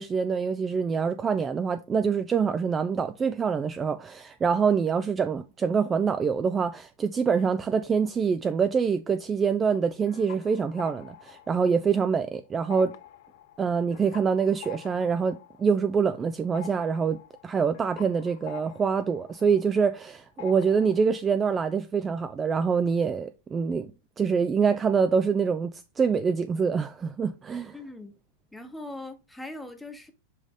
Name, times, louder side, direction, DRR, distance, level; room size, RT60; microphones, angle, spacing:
voice 1, 0.0-12.9 13.6-23.9 24.2-27.7, right 6 dB, 20° right, 0.3 m, -25 dB
sound 1, 9.8-12.3 12.6-20.1 20.4-21.2, left 12 dB, 60° left, 0.6 m, -47 dB
voice 2, 27.7-28.1 28.5-30.1, left 2 dB, 5° left, 0.9 m, -40 dB
5.2 x 5.2 x 3.5 m
supercardioid pair, 135°, 0 cm